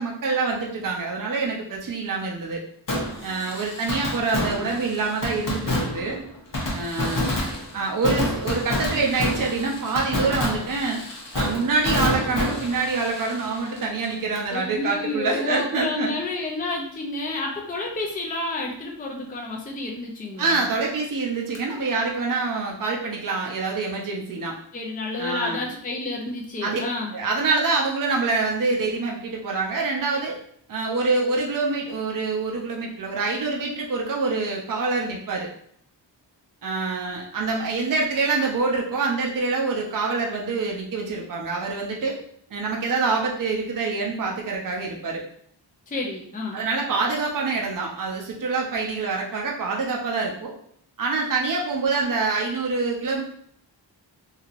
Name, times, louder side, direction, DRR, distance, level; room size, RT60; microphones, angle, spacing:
voice 1, 0.0-2.6 3.2-6.2 6.7-7.3 7.7-11.0 11.3-16.1 20.4-24.6 25.2-25.6 26.6-26.8 27.1-30.4 30.7-35.5 36.6-42.2 42.5-45.2 46.5-50.5 51.0-53.2, right 4 dB, 50° right, -1 dB, 0.6 m, -26 dB
Fireworks, 2.9-14.5 14.8-14.9 21.5-21.6, left 1 dB, 45° left, 0.8 m, -28 dB
voice 2, 14.5-20.6 24.7-27.1 45.9-46.6, left 3 dB, 20° left, -1 dB, 0.4 m, -30 dB
3.0 x 2.8 x 2.4 m, 0.63 s
wide cardioid pair, 85°, 44 cm